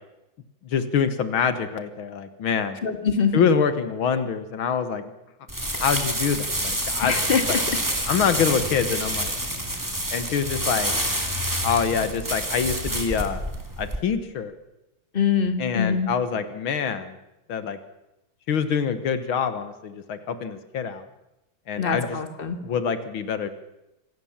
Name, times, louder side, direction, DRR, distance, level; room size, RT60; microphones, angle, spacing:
voice 1, 0.6-2.8 3.3-5.0 5.8-7.2 7.5-7.6 8.1-9.3 10.1-10.9 11.6-13.4 13.8-14.5 15.6-17.2 17.5-17.8 18.5-21.1 21.7-22.2 22.6-23.5, left 6 dB, 75° left, 11 dB, 2.1 m, -25 dB
voice 2, 2.8-3.4 7.0-7.4 15.1-16.1 21.8-22.6, left 6 dB, 30° left, 8 dB, 1.9 m, -23 dB
sound 1, 5.5-14.0, right 1 dB, 10° right, 2.5 m, -28 dB
25.5 x 18.0 x 7.3 m, 0.91 s
omnidirectional pair, 2.3 m